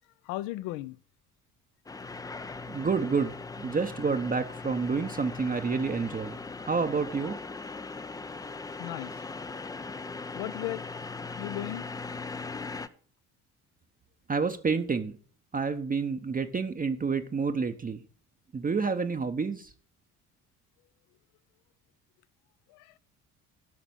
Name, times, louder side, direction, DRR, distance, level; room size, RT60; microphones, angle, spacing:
voice 1, 0.2-1.0 8.8-9.2 10.3-10.9 11.4-11.9 22.7-23.0, left 16 dB, 55° left, 0.6 m, -36 dB
sound 1, 1.9-12.9, left 4 dB, 10° left, 0.5 m, -39 dB
voice 2, 2.7-6.4 6.6-7.4 14.3-15.2 15.5-18.0 18.5-19.7, right 5 dB, 20° right, 0.8 m, -29 dB
12.5 x 5.9 x 5.4 m
figure-of-eight pair, 50°, 45 cm